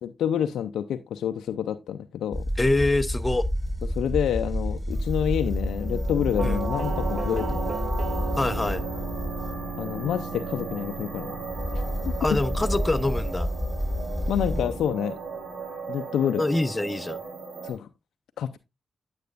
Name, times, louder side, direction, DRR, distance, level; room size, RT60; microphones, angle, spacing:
voice 1, 0.0-2.5 4.0-7.7 9.8-11.4 11.7-11.8 14.3-15.2 15.9-16.4 17.6-17.9 18.4-18.6, left 9 dB, 85° left, 0.5 m, -28 dB
sound 1, 2.3-9.7 11.5-14.9, equal, 5° left, 6.1 m, -29 dB
voice 2, 2.6-3.5 6.4-6.6 8.4-8.9 12.2-13.5 16.4-17.2, left 2 dB, 25° left, 0.7 m, -25 dB
sound 2, 4.9-17.7, right 4 dB, 85° right, 4.0 m, -38 dB
Doorbell, 6.4-15.2, right 3 dB, 60° right, 1.8 m, -36 dB
9.2 x 7.6 x 2.5 m
supercardioid pair, 45°, 0 cm